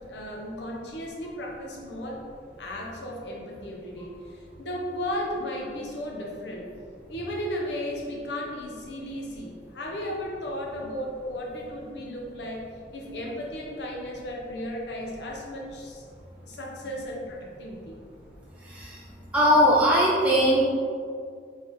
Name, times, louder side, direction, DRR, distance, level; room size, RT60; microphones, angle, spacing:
voice 1, 0.0-2.2 2.6-6.7 7.1-16.0 16.4-18.0, equal, 70° left, -2 dB, 0.8 m, -35 dB
voice 2, 19.3-20.7, equal, 10° right, -6 dB, 0.5 m, -20 dB
4.0 x 3.4 x 3.8 m, 2.2 s
head